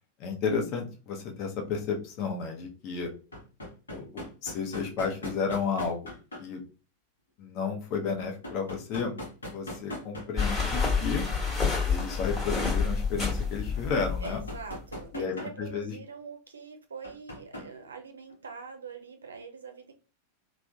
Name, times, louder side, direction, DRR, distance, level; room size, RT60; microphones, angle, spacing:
voice 1, 0.2-3.1 3.9-6.1 6.4-6.6 7.4-9.2 9.5-11.2 11.9-14.4 15.1-16.0, left 5 dB, 40° left, 2 dB, 0.8 m, -32 dB
sound 1, 1.0-1.1 3.0-6.4 8.2-10.6 10.9-11.0 13.8-15.6 17.0-17.7 18.3-18.4, left 1 dB, 75° left, 0.8 m, -40 dB
sound 2, 10.4-14.7, left 5 dB, 20° left, 1.2 m, -28 dB
voice 2, 14.2-19.9, right 5 dB, 70° right, 6 dB, 0.5 m, -44 dB
3.3 x 2.0 x 2.6 m, 0.34 s
figure-of-eight pair, 90°, 0 cm